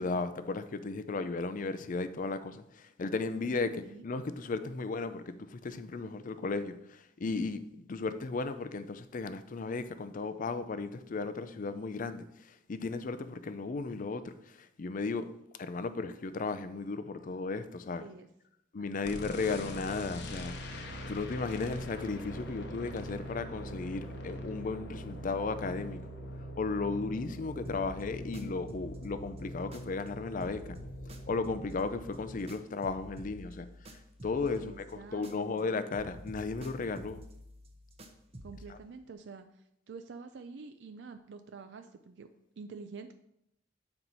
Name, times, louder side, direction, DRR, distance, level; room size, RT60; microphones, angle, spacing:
voice 1, 0.0-7.6 7.9-15.3 15.6-18.0 18.7-20.6 21.1-26.1 26.6-30.8 31.3-33.9 34.2-37.2 38.7-38.8, left 3 dB, 45° left, 0.5 m, -35 dB
voice 2, 18.8-19.8 34.6-35.7 38.4-42.3 42.6-43.1, right 4 dB, 70° right, 0.4 m, -48 dB
sound 1, 19.0-32.4, equal, 65° left, 0.9 m, -43 dB
sound 2, 27.6-30.1 30.4-35.6 35.9-38.7, equal, 35° right, 0.7 m, -50 dB
7.8 x 4.4 x 4.0 m
head